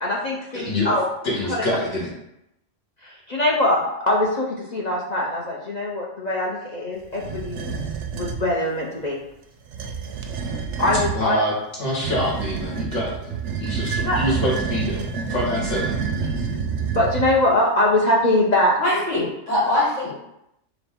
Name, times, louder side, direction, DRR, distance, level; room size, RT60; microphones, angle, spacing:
voice 1, 0.0-1.1 1.5-1.6 3.0-3.8 4.1-7.7 8.1-9.2 10.8-11.4 14.0-14.2 16.9-18.8, left 1 dB, 40° left, -4 dB, 0.7 m, -22 dB
voice 2, 0.5-0.9 1.2-2.1 11.1-15.0 15.3-15.9, left 1 dB, 70° left, -5 dB, 1.7 m, -26 dB
sound 1, 7.2-8.5 9.6-11.2 12.0-17.5, right 5 dB, 70° right, 0.9 m, -28 dB
voice 3, 18.8-20.2, left 1 dB, 85° left, -10 dB, 2.2 m, -22 dB
3.9 x 3.3 x 3.5 m, 0.82 s
omnidirectional pair, 1.3 m